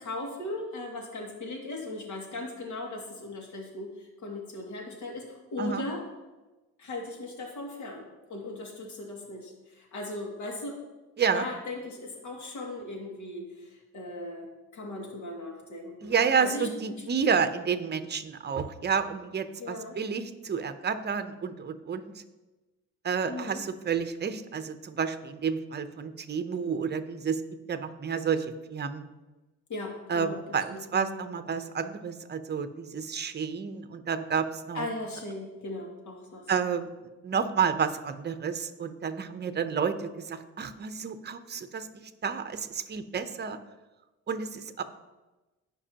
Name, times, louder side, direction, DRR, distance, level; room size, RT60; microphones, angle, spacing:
voice 1, 0.0-6.0 6.8-10.8 11.3-17.0 19.6-19.9 23.3-23.6 29.7-30.4 30.7-31.1 34.7-36.5, left 2 dB, 75° left, 0 dB, 2.3 m, -38 dB
voice 2, 16.0-22.1 23.0-27.4 27.7-29.1 30.1-34.9 36.5-36.9 37.2-41.9 42.2-43.6 44.3-44.8, right 6 dB, 35° right, 10 dB, 0.8 m, -30 dB
15.0 x 5.4 x 2.9 m, 1.1 s
cardioid pair, 90°, 30 cm